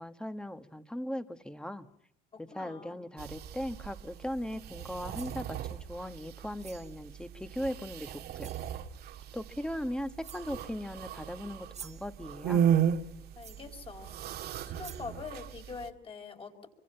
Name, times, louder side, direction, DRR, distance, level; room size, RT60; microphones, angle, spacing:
voice 1, 0.0-1.9 2.4-8.5 9.3-12.7, equal, 5° left, 9 dB, 1.5 m, -38 dB
voice 2, 2.5-3.0 13.3-14.2 14.6-16.7, left 5 dB, 35° left, 5 dB, 5.0 m, -44 dB
sound 1, 3.2-15.9, right 9 dB, 70° right, 1.6 m, -35 dB
sound 2, 4.9-5.4 6.6-6.9 7.9-8.0 8.4-8.7 9.7-9.8 10.2-10.6 11.5-12.1 13.4-13.7 14.4-14.5 14.8-15.2, right 7 dB, 40° right, 1.5 m, -49 dB
26.5 x 25.0 x 5.7 m, 0.76 s
cardioid pair, 110°, 17 cm